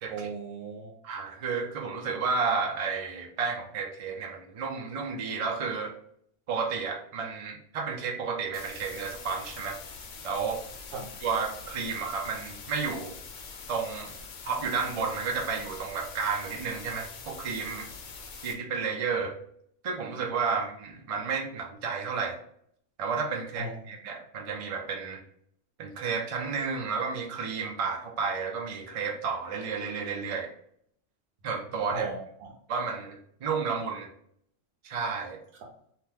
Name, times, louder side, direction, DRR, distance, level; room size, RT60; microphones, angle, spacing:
voice 1, 0.1-0.9 10.9-11.1 23.5-23.8 31.9-32.5 35.6-35.7, right 3 dB, 85° right, -2 dB, 1.0 m, -36 dB
voice 2, 1.0-5.9 6.5-9.8 10.2-10.6 11.2-13.1 13.7-14.1 14.4-17.9 18.4-19.3 19.8-22.4 23.0-25.2 25.8-30.5 31.4-32.1 32.7-34.1 34.8-35.4, right 5 dB, 50° right, 1 dB, 0.4 m, -32 dB
sound 1, 8.5-18.5, left 5 dB, 75° left, 0.9 m, -44 dB
2.8 x 2.2 x 3.3 m, 0.66 s
omnidirectional pair, 1.3 m